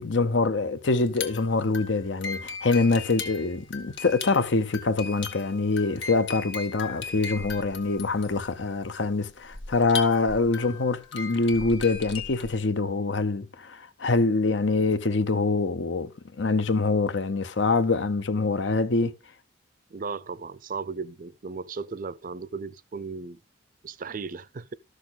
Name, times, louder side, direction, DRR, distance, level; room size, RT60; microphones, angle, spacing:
voice 1, 0.0-19.1, left 3 dB, 70° left, 0.8 m, -25 dB
sound 1, 1.0-12.5, left 5 dB, 90° left, 1.8 m, -38 dB
voice 2, 19.9-23.4 23.8-24.7, right 4 dB, 45° right, 0.5 m, -36 dB
13.0 x 6.6 x 4.0 m
head